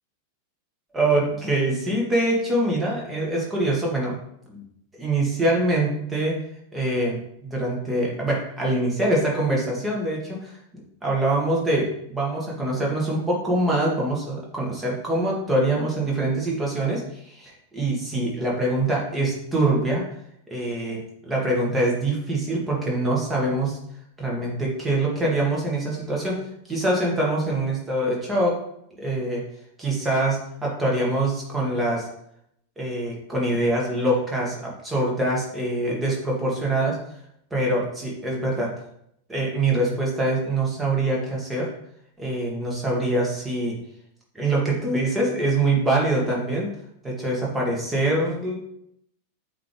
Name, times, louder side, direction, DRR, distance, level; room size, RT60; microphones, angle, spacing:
voice 1, 0.9-4.2 4.5-4.6 4.9-6.4 6.7-10.6 11.0-20.0 20.5-23.8 24.2-26.4 26.7-28.6 29.0-29.4 29.8-32.1 32.8-37.0 37.5-38.7 39.3-41.7 42.2-43.8 44.3-46.7 47.0-48.6, right 1 dB, 10° right, -3 dB, 2.1 m, -24 dB
8.1 x 3.9 x 3.5 m, 0.74 s
figure-of-eight pair, 90°, 0 cm